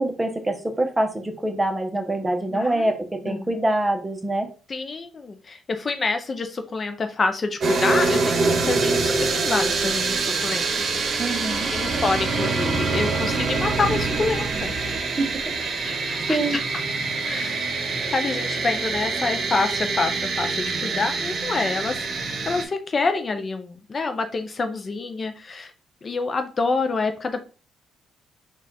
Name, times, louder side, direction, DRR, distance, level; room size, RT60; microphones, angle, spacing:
voice 1, 0.0-4.5 11.2-11.7 15.2-15.3 15.9-16.0 16.3-16.6, right 1 dB, 15° right, 4 dB, 0.9 m, -25 dB
voice 2, 2.5-2.9 3.2-3.5 4.7-10.7 11.7-14.7 15.8-16.6 17.2-17.7 18.1-25.7 26.0-27.4, left 3 dB, 35° left, 7 dB, 0.5 m, -27 dB
sound 1, 7.6-22.6, right 3 dB, 55° right, 0.9 m, -25 dB
4.1 x 2.4 x 4.1 m, 0.35 s
cardioid pair, 90°, 0 cm